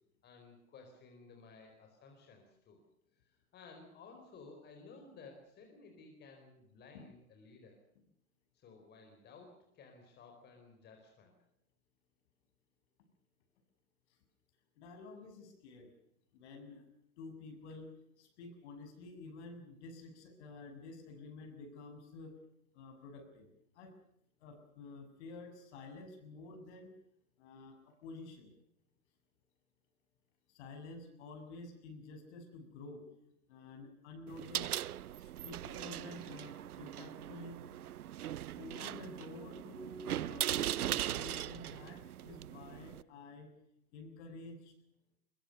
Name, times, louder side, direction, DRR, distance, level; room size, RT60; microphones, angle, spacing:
voice 1, 0.2-2.8 3.2-7.8 8.5-11.3, left 4 dB, 25° left, 3 dB, 4.5 m, -56 dB
voice 2, 14.8-15.9 16.3-16.9 17.2-22.4 22.7-23.5 23.7-24.0 24.4-26.9 27.4-28.5 30.5-33.0 33.5-34.7 35.2-37.6 38.6-43.5 43.9-44.7, left 3 dB, 50° left, 6 dB, 7.3 m, -50 dB
sound 1, 34.3-43.0, right 12 dB, 85° right, 0.8 m, -40 dB
22.5 x 21.5 x 6.9 m, 0.77 s
hypercardioid pair, 135°, 43 cm